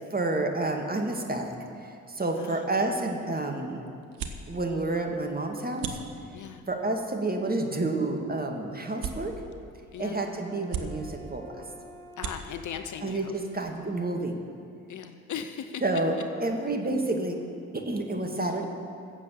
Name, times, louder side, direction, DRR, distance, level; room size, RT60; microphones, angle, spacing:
voice 1, 0.1-3.8 4.5-6.0 6.7-9.4 10.0-11.4 13.0-14.4 15.8-17.4 17.7-18.7, right 2 dB, 25° right, 2 dB, 2.1 m, -29 dB
voice 2, 2.4-2.7 6.3-6.6 9.9-10.2 12.2-13.3 14.9-15.8, left 8 dB, 50° left, 8 dB, 0.8 m, -38 dB
sound 1, 2.7-14.3, right 6 dB, 75° right, 1.0 m, -43 dB
sound 2, 10.1-14.2, left 1 dB, 75° left, 2.3 m, -50 dB
15.5 x 7.3 x 7.2 m, 2.4 s
figure-of-eight pair, 40°, 39 cm